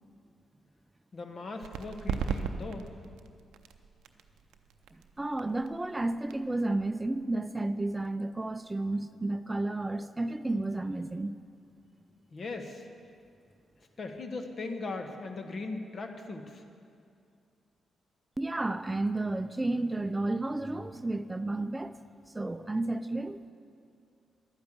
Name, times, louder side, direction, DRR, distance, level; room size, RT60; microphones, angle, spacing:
voice 1, 1.1-2.9 12.3-12.8 14.0-16.6, left 3 dB, 55° left, 5 dB, 1.3 m, -39 dB
sound 1, 1.6-8.9, right 6 dB, 80° right, 0.6 m, -40 dB
voice 2, 5.2-11.4 18.4-22.0 22.3-23.4, right 2 dB, 20° right, 11 dB, 0.5 m, -32 dB
11.5 x 9.4 x 7.3 m, 2.4 s
supercardioid pair, 45°, 0 cm